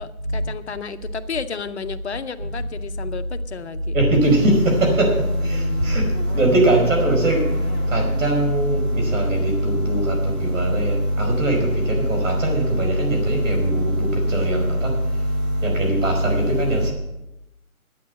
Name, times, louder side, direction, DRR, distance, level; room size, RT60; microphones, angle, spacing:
voice 1, 0.0-4.0, left 6 dB, 50° left, 10 dB, 0.7 m, -32 dB
voice 2, 3.9-16.9, right 1 dB, 60° right, 3 dB, 5.0 m, -20 dB
sound 1, 4.4-9.5, left 2 dB, 10° right, 1.6 m, -38 dB
11.5 x 8.6 x 7.6 m, 0.92 s
hypercardioid pair, 165°, 43 cm